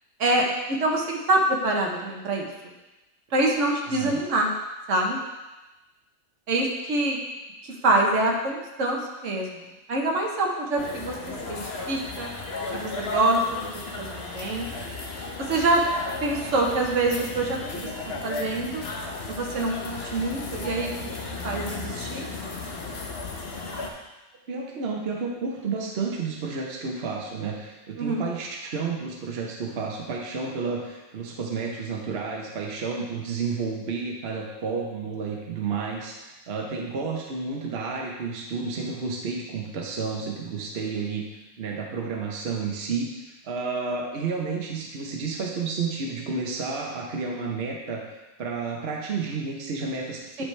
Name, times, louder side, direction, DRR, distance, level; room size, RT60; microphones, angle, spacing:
voice 1, 0.2-2.5 3.3-4.5 4.9-5.2 6.5-7.2 7.6-11.2 11.4-11.6 11.9-12.3 12.7-13.6 14.0-14.7 15.4-15.8 16.2-17.9 18.2-18.8 19.3-20.9 21.4-22.3 28.0-28.3 50.4-50.5, right 2 dB, 75° right, 0 dB, 1.3 m, -25 dB
voice 2, 3.9-4.2 24.5-41.3 41.6-43.1 43.4-48.0 48.4-50.4, right 4 dB, 55° right, -1 dB, 1.1 m, -31 dB
sound 1, 10.8-23.9, left 3 dB, 60° left, 1.1 m, -35 dB
9.9 x 5.0 x 3.3 m, 1.1 s
omnidirectional pair, 1.3 m